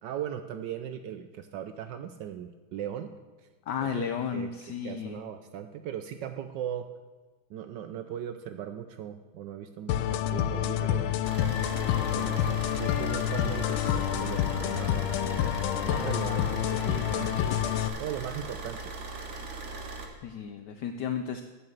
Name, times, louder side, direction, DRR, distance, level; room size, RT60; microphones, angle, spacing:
voice 1, 0.0-3.1 3.8-4.5 4.8-6.9 7.5-11.2 12.1-15.1 15.8-17.4 18.0-18.9, right 9 dB, 70° right, 9 dB, 1.1 m, -38 dB
voice 2, 3.7-5.2 20.2-21.4, left 7 dB, 70° left, 8 dB, 1.1 m, -33 dB
sound 1, 9.9-17.9, left 11 dB, 85° left, 1.4 m, -28 dB
Car / Idling, 11.2-20.1, right 3 dB, 40° right, 1.5 m, -39 dB
9.7 x 7.8 x 7.7 m, 1.3 s
omnidirectional pair, 2.2 m